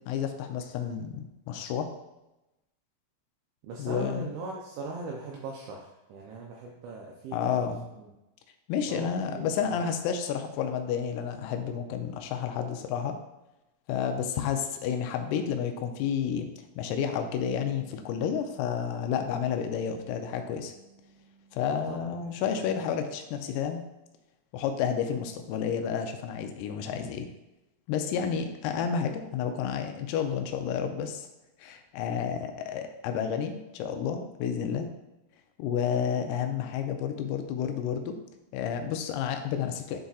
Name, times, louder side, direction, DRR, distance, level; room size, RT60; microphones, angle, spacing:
voice 1, 0.1-1.9 3.8-4.3 7.3-7.9 8.7-13.2 13.9-16.5 16.8-20.7 21.5-23.8 24.5-27.3 27.9-31.3 31.6-34.9 35.6-38.2 38.5-40.0, left 7 dB, 85° left, 5 dB, 3.2 m, -30 dB
voice 2, 3.6-8.1 8.9-9.9 21.7-22.7, right 3 dB, 85° right, -1 dB, 2.6 m, -40 dB
Bass guitar, 17.4-23.6, right 6 dB, 65° right, 1.4 m, -56 dB
11.5 x 3.9 x 2.4 m, 0.95 s
omnidirectional pair, 6.0 m